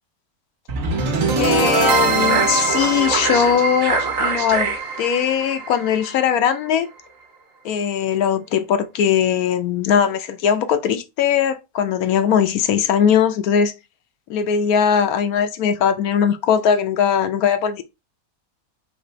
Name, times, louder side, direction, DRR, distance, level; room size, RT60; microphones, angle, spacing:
sound 1, 0.7-6.8, right 4 dB, 60° right, 1.2 m, -21 dB
voice 1, 1.4-6.9 7.6-13.7 14.3-17.8, left 8 dB, 75° left, 1.1 m, -20 dB
4.1 x 2.8 x 4.4 m
omnidirectional pair, 1.6 m